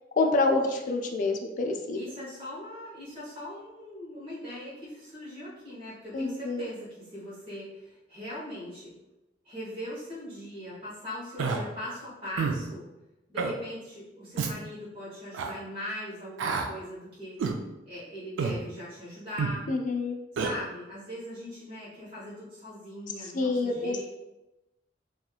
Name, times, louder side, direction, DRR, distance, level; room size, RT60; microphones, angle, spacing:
voice 1, 0.2-2.0 6.1-6.6 19.7-20.2 23.3-24.0, left 3 dB, 45° left, 3 dB, 0.3 m, -27 dB
voice 2, 1.9-8.9 9.4-12.9 13.3-17.4 17.9-19.7 20.3-24.0, left 1 dB, 30° right, -10 dB, 0.9 m, -40 dB
Human voice, 11.4-11.6 12.4-12.6 13.4-13.5 14.4-14.5 15.3-15.5 16.4-16.7 17.4-17.6 18.4-18.6 19.4-19.6 20.4-20.5, right 5 dB, 85° right, 0.3 m, -28 dB
2.9 x 2.4 x 2.3 m, 1.0 s
head